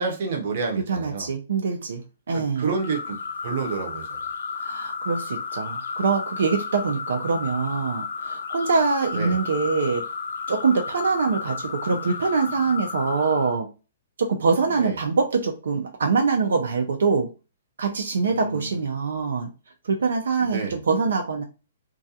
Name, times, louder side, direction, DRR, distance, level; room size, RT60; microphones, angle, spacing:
voice 1, 0.0-1.3 2.3-3.2 3.4-4.0 9.1-9.4 14.7-15.0 18.2-18.8 20.4-20.8, right 4 dB, 45° right, 0.7 m, -29 dB
voice 2, 0.9-2.7 4.6-10.0 10.5-13.7 14.2-17.3 17.8-19.5 19.9-21.4, right 4 dB, 80° right, 0.5 m, -24 dB
sound 1, 2.7-13.6, left 5 dB, 75° left, 0.5 m, -33 dB
2.4 x 2.2 x 2.6 m
hypercardioid pair, 175°, 0 cm